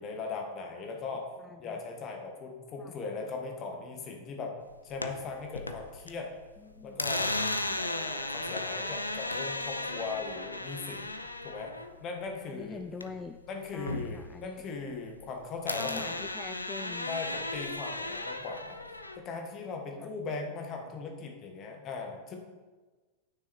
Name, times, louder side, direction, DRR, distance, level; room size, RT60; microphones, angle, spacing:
voice 1, 0.0-1.3 1.6-4.6 4.8-6.3 6.8-7.4 7.7-11.1 11.4-11.7 12.0-12.8 13.5-16.1 17.1-22.4, left 4 dB, 30° left, 3 dB, 1.6 m, -39 dB
voice 2, 1.4-1.8 2.8-3.0 6.6-7.0 12.4-13.4 13.7-14.6 15.8-17.4 20.0-20.1, left 4 dB, 15° left, 8 dB, 0.4 m, -44 dB
sound 1, 4.7-6.1 6.4-13.3 13.6-15.3 15.7-19.2, left 2 dB, 85° left, 0.6 m, -35 dB
9.7 x 6.4 x 4.6 m, 1.3 s
figure-of-eight pair, 90°, 0 cm